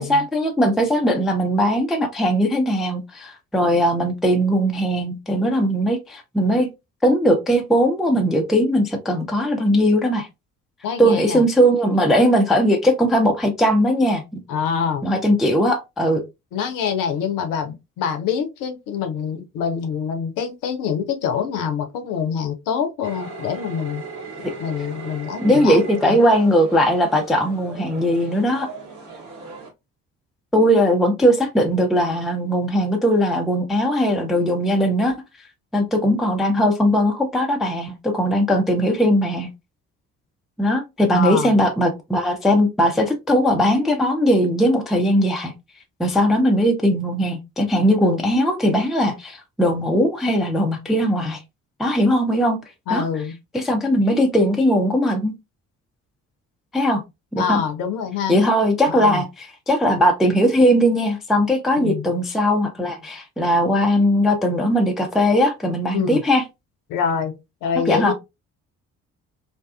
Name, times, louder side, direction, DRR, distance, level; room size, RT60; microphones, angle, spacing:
voice 1, 0.0-6.7 7.0-10.3 11.0-14.4 15.0-16.2 24.4-24.5 25.4-28.7 30.5-35.2 35.7-39.5 40.6-45.5 46.0-51.4 51.8-52.6 52.9-53.1 53.5-55.3 56.7-57.0 57.3-57.6 58.3-66.4 67.9-68.1, equal, ahead, 0.4 m, -19 dB
voice 2, 10.8-11.5 14.5-15.0 16.5-24.0 24.6-26.2 41.1-41.6 52.9-53.4 57.4-58.4 58.9-59.2 61.8-62.1 65.9-66.2 66.9-68.1, left 7 dB, 55° left, 0.6 m, -25 dB
sound 1, 23.0-29.7, right 3 dB, 45° right, 1.0 m, -38 dB
2.5 x 2.3 x 2.2 m
figure-of-eight pair, 40°, 40 cm